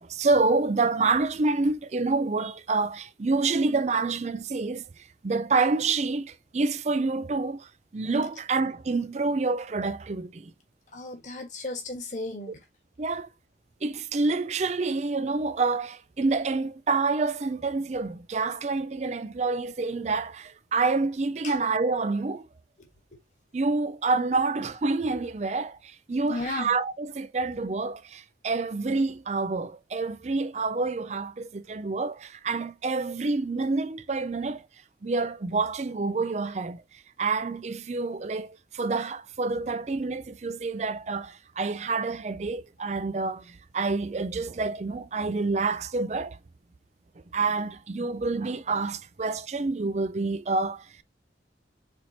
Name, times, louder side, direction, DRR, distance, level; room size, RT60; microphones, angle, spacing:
voice 1, 0.0-10.5 13.0-13.3 13.8-22.5 23.5-34.7 35.0-46.4 47.3-51.0, right 3 dB, 40° right, 0.4 m, -28 dB
voice 2, 10.9-12.6 21.4-21.5 26.3-26.7, left 2 dB, 40° left, 1.5 m, -34 dB
4.5 x 4.3 x 2.8 m
head